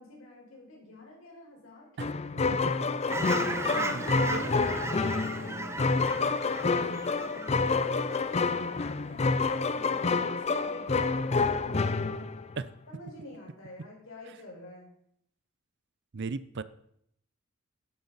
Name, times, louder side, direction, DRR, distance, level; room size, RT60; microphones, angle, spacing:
voice 1, 0.0-2.1 3.0-6.1 6.7-12.2 12.9-14.9, left 1 dB, 65° left, -1 dB, 4.7 m, -47 dB
sound 1, 2.0-12.6, left 4 dB, 30° left, 0.5 m, -28 dB
Fowl / Chirp tweet, 3.1-8.9 9.3-9.6, right 2 dB, 10° right, 0.6 m, -36 dB
voice 2, 3.6-4.6 12.6-12.7 16.1-16.6, right 4 dB, 55° right, 16 dB, 0.5 m, -37 dB
13.0 x 11.0 x 4.1 m, 0.71 s
head